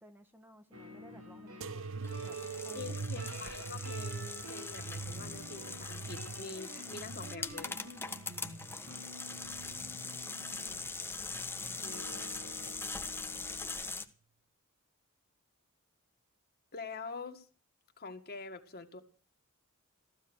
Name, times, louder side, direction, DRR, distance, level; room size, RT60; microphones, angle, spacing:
voice 1, 0.0-2.4 2.6-3.1, equal, 10° right, 1.3 m, -57 dB
sound 1, 0.7-13.8, right 1 dB, 85° right, 5.7 m, -50 dB
sound 2, 1.6-8.8 9.3-10.1 10.9-11.4 12.4-12.5, right 4 dB, 65° right, 0.7 m, -44 dB
sound 3, 2.0-14.0, left 3 dB, 10° left, 1.3 m, -42 dB
voice 2, 2.8-7.8 11.8-12.1 16.7-17.5 18.0-19.0, left 4 dB, 45° left, 2.0 m, -45 dB
15.5 x 14.5 x 6.4 m
head